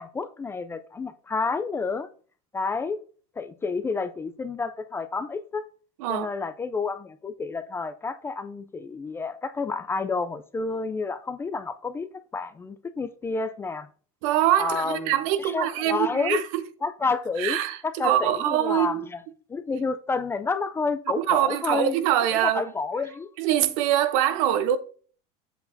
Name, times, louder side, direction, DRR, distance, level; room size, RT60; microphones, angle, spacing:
voice 1, 0.0-2.1 2.5-3.0 3.4-5.6 6.1-12.1 12.3-13.9 14.6-16.4 16.8-17.6 17.8-19.2 19.5-21.9 22.3-23.3, left 4 dB, 15° left, 0.3 m, -29 dB
voice 2, 14.2-16.6 17.4-19.0 21.2-22.7 23.4-24.8, right 12 dB, 75° right, 0.9 m, -24 dB
7.9 x 6.9 x 2.6 m
cardioid pair, 150°, 18 cm